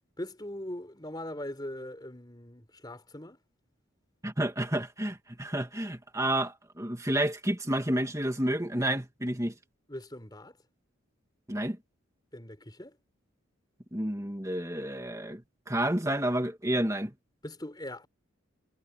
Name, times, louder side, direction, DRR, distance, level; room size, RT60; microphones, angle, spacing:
voice 1, 0.2-3.4 9.9-10.6 12.3-13.0 17.4-18.1, left 1 dB, 20° left, 4.1 m, -41 dB
voice 2, 4.2-9.5 11.5-11.8 13.9-17.1, right 1 dB, 15° right, 2.3 m, -30 dB
head